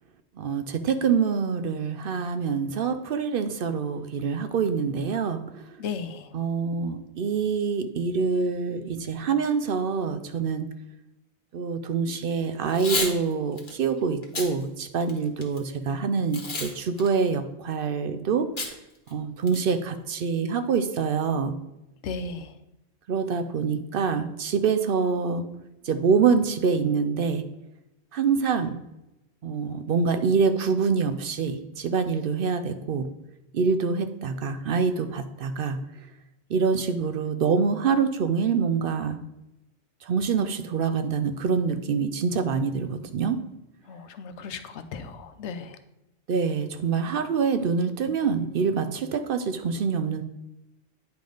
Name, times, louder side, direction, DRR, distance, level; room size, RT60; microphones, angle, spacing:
voice 1, 0.4-5.6 6.3-10.7 11.5-18.5 19.1-21.6 23.1-25.5 25.8-27.5 28.1-28.8 29.4-33.1 33.5-35.8 36.5-39.2 40.0-43.4 46.3-50.2, right 5 dB, 60° right, 10 dB, 0.7 m, -25 dB
voice 2, 5.8-6.3 22.0-22.6 43.8-45.8, left 5 dB, 80° left, 10 dB, 1.0 m, -35 dB
Packing tape duct tape / Tearing, 12.7-13.1 13.6-13.7 14.2-14.5 15.0-15.6 16.3-16.7 17.0-17.1 18.6-18.7 19.1-19.2 19.5-19.8, left 3 dB, 50° left, 1.4 m, -30 dB
9.1 x 5.2 x 3.8 m, 0.93 s
omnidirectional pair, 1.2 m